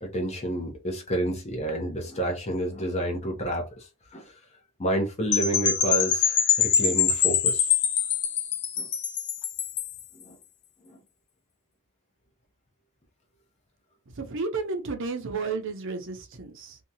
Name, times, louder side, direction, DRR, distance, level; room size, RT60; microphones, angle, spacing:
voice 1, 0.0-4.3 4.8-7.7 8.8-8.9 10.1-10.4 10.8-11.0, right 1 dB, 30° left, 0.7 m, -30 dB
Percussion / Wind chime, 5.3-10.0, left 8 dB, 85° left, 0.7 m, -24 dB
voice 2, 14.2-16.8, right 4 dB, 60° right, 0.6 m, -32 dB
2.7 x 2.3 x 2.7 m
head